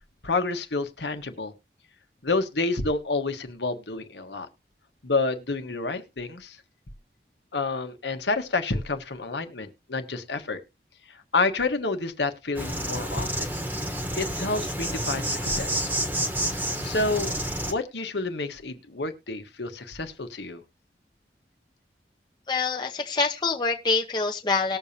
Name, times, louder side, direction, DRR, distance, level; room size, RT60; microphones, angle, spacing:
voice 1, 0.2-1.5 2.2-4.5 5.0-6.6 7.5-10.6 11.1-13.5 14.2-15.9 16.8-17.3 17.6-20.6, left 3 dB, 85° left, 8 dB, 1.4 m, -29 dB
Insect, 12.6-17.7, right 1 dB, 10° right, 1.1 m, -29 dB
voice 2, 22.5-24.8, left 4 dB, 25° left, 1 dB, 0.8 m, -25 dB
19.0 x 6.9 x 2.8 m, 0.26 s
head